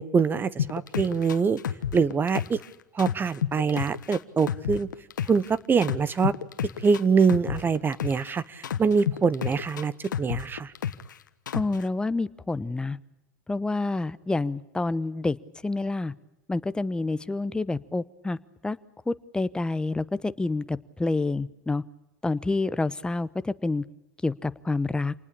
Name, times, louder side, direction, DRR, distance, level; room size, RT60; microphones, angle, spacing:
voice 1, 0.0-1.6 1.9-2.6 2.9-4.9 5.3-6.3 6.8-9.9 10.2-10.7, right 5 dB, 20° right, 19 dB, 1.1 m, -24 dB
sound 1, 0.6-2.7 3.0-5.5 5.8-8.3 8.6-11.1 11.5-11.8, left 9 dB, 85° left, 1.3 m, -30 dB
voice 2, 11.5-13.0 13.5-15.4 15.6-16.1 16.5-18.4 18.6-18.8 19.1-21.8 22.2-23.8 24.2-25.1, left 3 dB, 10° left, 15 dB, 1.0 m, -28 dB
28.0 x 19.5 x 8.6 m, 0.94 s
hypercardioid pair, 100°, 10 cm